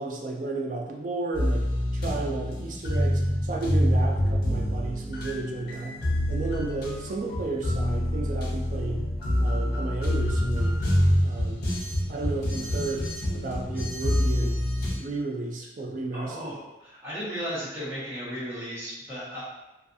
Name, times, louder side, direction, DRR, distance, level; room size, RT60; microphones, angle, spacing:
voice 1, 0.0-1.7 1.9-6.0 6.3-9.1 9.4-10.8 11.2-11.7 12.1-14.6 14.9-16.5, right 3 dB, 45° right, 0 dB, 0.4 m, -33 dB
sound 1, 1.3-15.0, equal, 55° left, 0.6 m, -26 dB
voice 2, 16.1-19.4, equal, 15° right, -9 dB, 0.9 m, -35 dB
2.5 x 2.3 x 2.5 m, 0.97 s
head